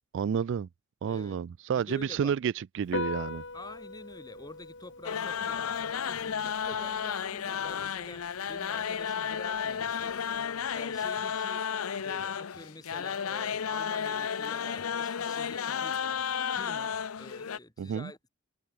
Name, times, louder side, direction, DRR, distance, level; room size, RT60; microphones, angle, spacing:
voice 1, 0.1-0.7 1.0-3.4 17.8-18.1, right 7 dB, 60° right, 0.3 m, -30 dB
voice 2, 1.1-1.4 1.7-2.3 3.5-10.1 10.7-11.6 12.0-16.0 16.5-18.3, left 2 dB, 20° left, 4.8 m, -48 dB
Piano, 2.8-10.8, left 3 dB, 60° left, 5.7 m, -43 dB
sound 1, 5.0-17.6, left 7 dB, 80° left, 0.7 m, -33 dB
head